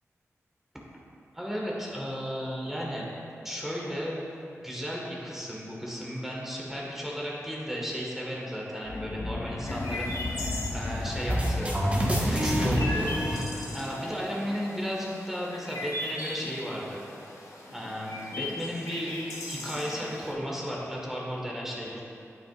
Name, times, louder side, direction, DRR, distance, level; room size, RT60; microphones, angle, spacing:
voice 1, 1.3-3.1 3.4-4.2 4.6-10.1 10.7-11.8 12.2-13.1 13.7-17.0 17.7-19.2 19.5-22.0, equal, 5° right, -4 dB, 1.6 m, -34 dB
sound 1, 8.8-14.1, left 2 dB, 45° left, 0.7 m, -35 dB
Chirp tweet, 9.7-20.3, left 2 dB, 75° left, 1.0 m, -39 dB
sound 2, 11.3-14.2, equal, 25° right, 1.5 m, -27 dB
9.0 x 8.7 x 2.5 m, 2.8 s
cardioid pair, 60°, 5 cm